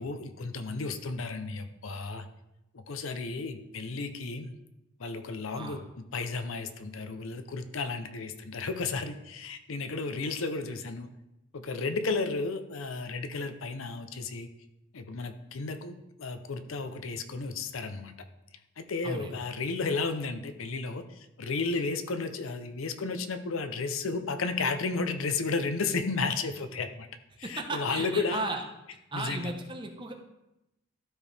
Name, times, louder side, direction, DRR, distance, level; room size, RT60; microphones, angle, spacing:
voice 1, 0.0-2.3 2.7-4.5 5.0-11.1 11.5-14.5 14.9-18.1 18.8-27.1 27.4-28.4 29.1-29.5, left 4 dB, 70° left, 9 dB, 0.6 m, -33 dB
voice 2, 27.4-28.6 29.1-30.1, right 2 dB, 20° right, 3 dB, 0.8 m, -35 dB
12.5 x 4.6 x 3.3 m, 0.91 s
head